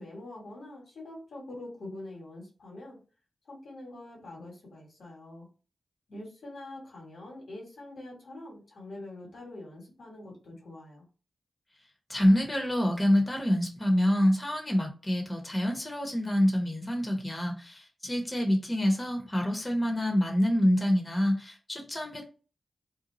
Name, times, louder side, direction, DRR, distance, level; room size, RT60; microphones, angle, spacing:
voice 1, 0.0-3.0 3.4-5.5 6.1-11.1, left 1 dB, 85° left, -2 dB, 1.3 m, -44 dB
voice 2, 12.1-22.3, equal, 25° left, 1 dB, 1.0 m, -26 dB
2.7 x 2.3 x 4.1 m, 0.35 s
cardioid pair, 55°, 0 cm